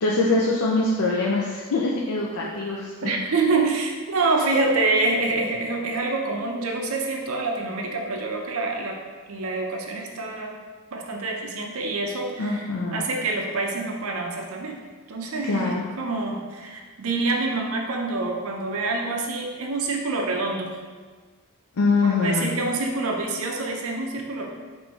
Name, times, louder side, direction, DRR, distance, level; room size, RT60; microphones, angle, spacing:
voice 1, 0.0-2.9 3.2-3.3 12.4-13.0 15.4-15.8 21.8-22.5, left 3 dB, 80° left, -3 dB, 0.5 m, -23 dB
voice 2, 3.0-9.0 9.3-10.6 10.9-14.8 15.1-20.8 22.0-24.5, right 3 dB, 70° right, 1 dB, 0.6 m, -26 dB
4.5 x 2.6 x 4.3 m, 1.4 s
head